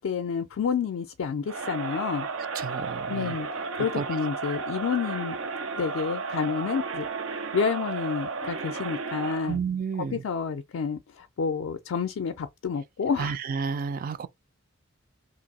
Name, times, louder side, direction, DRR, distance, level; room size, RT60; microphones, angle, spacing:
voice 1, 0.0-2.3 3.1-3.5 3.7-5.4 5.7-9.6 10.0-13.4, left 6 dB, 70° left, 0.4 m, -29 dB
Crowd, 1.5-9.6, right 4 dB, 85° right, 0.7 m, -33 dB
voice 2, 2.6-3.3 4.0-4.1 9.5-10.2 13.2-14.3, right 6 dB, 45° right, 0.3 m, -31 dB
2.9 x 2.6 x 4.0 m
head